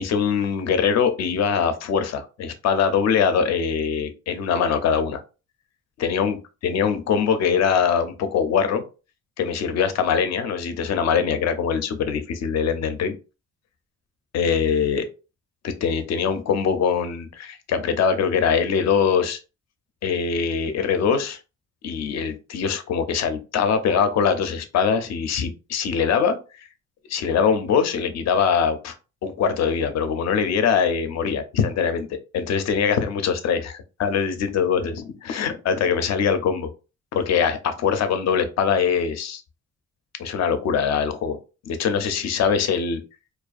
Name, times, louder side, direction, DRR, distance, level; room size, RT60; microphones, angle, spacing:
voice 1, 0.0-5.2 6.0-8.8 9.4-13.1 14.3-15.1 15.6-19.4 20.0-21.4 21.8-26.4 27.1-28.9 29.2-36.7 37.1-39.4 40.2-41.4 41.7-43.0, left 6 dB, 60° left, 10 dB, 0.5 m, -22 dB
2.4 x 2.2 x 2.4 m, 0.31 s
cardioid pair, 90°, 30 cm